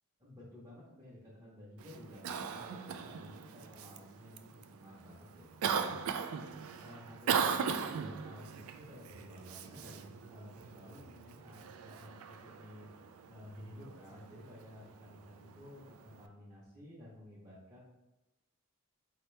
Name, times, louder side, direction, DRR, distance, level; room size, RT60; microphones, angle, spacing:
voice 1, 0.2-6.0 6.8-12.9 13.3-17.8, left 1 dB, 15° right, -9 dB, 0.8 m, -53 dB
Cough, 1.8-16.3, right 6 dB, 70° right, 0.3 m, -40 dB
4.4 x 2.8 x 3.2 m, 0.97 s
head